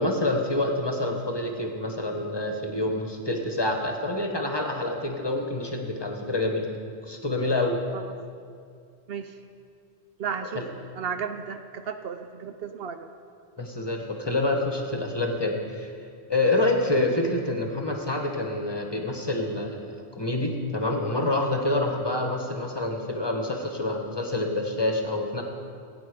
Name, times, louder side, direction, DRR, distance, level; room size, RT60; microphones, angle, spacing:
voice 1, 0.0-6.7 7.0-7.8 10.5-10.7 13.6-15.9 16.3-19.9 20.2-25.4, left 2 dB, 25° left, 3 dB, 1.1 m, -27 dB
voice 2, 10.2-10.6 11.0-13.1, right 7 dB, 65° right, 8 dB, 0.8 m, -33 dB
16.5 x 8.8 x 5.0 m, 2.3 s
omnidirectional pair, 1.1 m